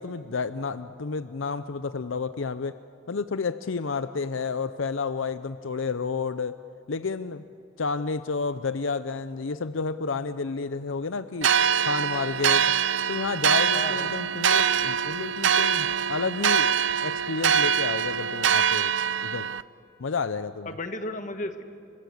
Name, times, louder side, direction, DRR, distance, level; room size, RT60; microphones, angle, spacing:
voice 1, 0.0-2.8 3.1-6.6 6.9-7.4 7.8-11.5 11.8-12.7 13.1-16.7 17.0-18.9 19.2-19.5 20.0-20.7, left 4 dB, 75° left, 12 dB, 0.6 m, -30 dB
sound 1, 11.4-19.6, right 8 dB, 65° right, 0.6 m, -24 dB
voice 2, 11.8-12.3 13.7-14.1 20.6-21.6, left 2 dB, 40° left, 7 dB, 1.5 m, -34 dB
29.5 x 23.0 x 8.1 m, 2.5 s
head